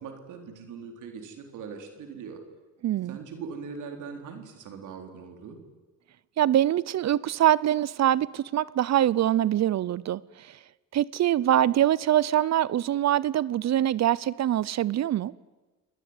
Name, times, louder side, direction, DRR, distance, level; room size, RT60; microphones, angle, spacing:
voice 1, 0.0-2.4 3.1-5.6, right 5 dB, 80° right, 4.0 m, -41 dB
voice 2, 2.8-3.2 6.4-10.6 10.9-15.3, right 12 dB, 60° right, 0.8 m, -24 dB
26.0 x 20.0 x 9.7 m
cardioid pair, 90°, 30 cm